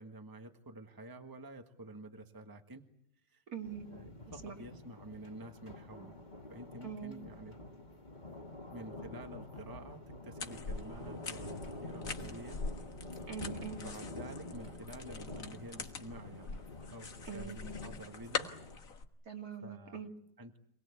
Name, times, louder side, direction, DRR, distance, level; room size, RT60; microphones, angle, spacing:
voice 1, 0.0-2.8 3.3-3.4 3.8-6.2 6.5-7.5 8.7-12.6 13.7-18.5 19.6-20.0 20.4-20.6, right 1 dB, 15° right, 6 dB, 1.5 m, -50 dB
voice 2, 3.5-3.9 4.4-4.6 6.8-7.1 13.3-13.8 17.3-17.6 19.2-20.1, right 7 dB, 60° right, 4 dB, 2.9 m, -43 dB
sound 1, 3.6-18.8, left 2 dB, 25° left, 2.4 m, -47 dB
sound 2, 10.4-19.0, left 4 dB, 55° left, 1.9 m, -43 dB
27.0 x 20.0 x 8.4 m, 0.72 s
omnidirectional pair, 1.8 m